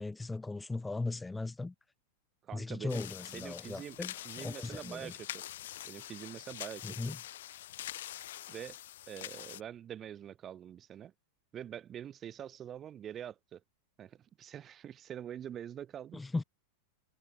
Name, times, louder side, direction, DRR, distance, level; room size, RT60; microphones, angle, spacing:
voice 1, 0.0-1.7 2.5-5.1 6.8-7.2 16.1-16.4, left 3 dB, 10° left, 3.6 m, -38 dB
voice 2, 2.4-4.0 4.2-5.4 5.8-7.1 8.5-8.8 9.1-11.1 11.5-13.6 14.0-16.2, right 10 dB, 25° right, 3.5 m, -45 dB
sound 1, 2.9-9.6, left 13 dB, 60° left, 1.3 m, -45 dB
figure-of-eight pair, 90°, 0 cm